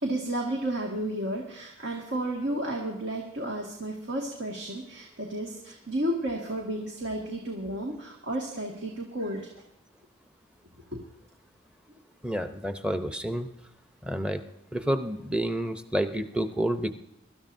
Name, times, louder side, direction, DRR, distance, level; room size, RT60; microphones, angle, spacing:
voice 1, 0.0-9.5 10.9-11.0, right 1 dB, 75° right, 0 dB, 2.0 m, -32 dB
voice 2, 12.2-13.5 14.0-14.4 14.7-16.9, right 1 dB, 5° right, 8 dB, 0.7 m, -29 dB
23.5 x 13.0 x 2.7 m, 0.82 s
head